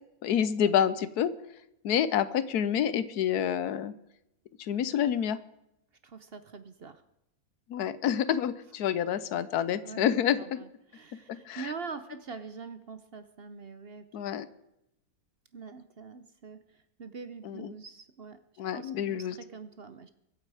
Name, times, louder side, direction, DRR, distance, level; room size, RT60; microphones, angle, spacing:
voice 1, 0.2-1.3 1.8-3.9 4.6-5.4 7.7-10.6 11.3-11.7 14.1-14.5 17.4-17.7 18.6-19.4, left 9 dB, 85° left, 15 dB, 1.3 m, -28 dB
voice 2, 6.0-7.0 9.8-10.0 10.4-14.1 15.5-18.4 18.7-20.1, right 5 dB, 50° right, 11 dB, 0.8 m, -44 dB
24.0 x 8.8 x 4.8 m, 0.83 s
omnidirectional pair, 1.6 m